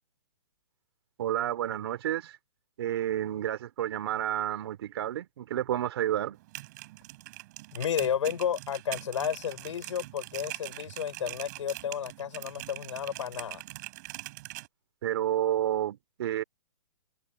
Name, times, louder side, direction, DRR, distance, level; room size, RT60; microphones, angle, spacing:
voice 1, 1.2-2.4 2.8-6.4 15.0-16.4, right 12 dB, 50° right, 3.0 m, -30 dB
sound 1, 6.3-14.7, right 20 dB, 35° right, 7.1 m, -43 dB
voice 2, 7.7-13.6, left 8 dB, 70° left, 4.5 m, -32 dB
hypercardioid pair, 160°, 16 cm